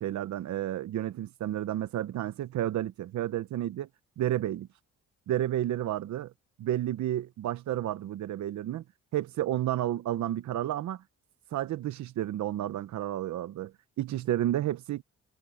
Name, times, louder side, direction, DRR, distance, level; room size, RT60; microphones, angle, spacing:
voice 1, 0.0-3.9 4.2-4.7 5.3-6.3 6.6-8.8 9.1-11.0 11.5-15.0, right 12 dB, 70° right, 0.9 m, -31 dB
cardioid pair, 90°, 30 cm